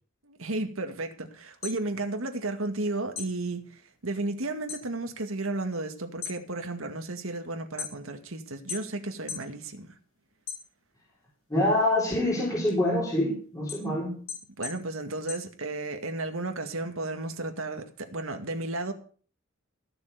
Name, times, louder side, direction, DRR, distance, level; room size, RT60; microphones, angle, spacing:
voice 1, 0.2-9.9 14.6-18.9, right 2 dB, 80° right, 2.1 m, -33 dB
sound 1, 1.4-2.8 3.1-4.9 5.2-5.7 6.1-8.3 8.7-9.5 9.9-11.1 11.6-16.1, left 7 dB, 80° left, 5.0 m, -40 dB
voice 2, 11.5-14.2, left 1 dB, 15° left, 4.2 m, -25 dB
15.0 x 7.0 x 6.8 m
head